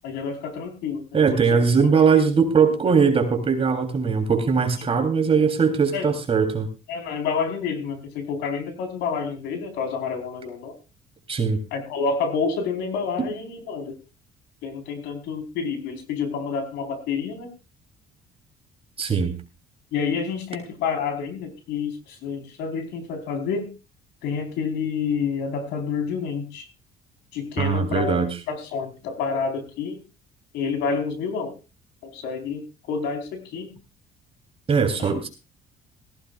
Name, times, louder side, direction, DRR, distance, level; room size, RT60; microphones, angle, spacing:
voice 1, 0.0-1.2 1.5-1.6 2.1-2.2 5.9-6.1 6.9-10.8 11.7-14.0 14.6-17.5 19.9-23.7 24.2-26.7 27.3-30.0 30.5-31.5 32.0-33.7 35.0-35.3, left 5 dB, 85° left, 7 dB, 4.2 m, -28 dB
voice 2, 1.1-6.7 11.3-11.6 13.2-13.3 19.0-19.4 27.6-28.3 34.7-35.3, right 5 dB, 35° right, 5 dB, 3.3 m, -20 dB
18.5 x 16.0 x 2.4 m, 0.29 s
cardioid pair, 110°, 17 cm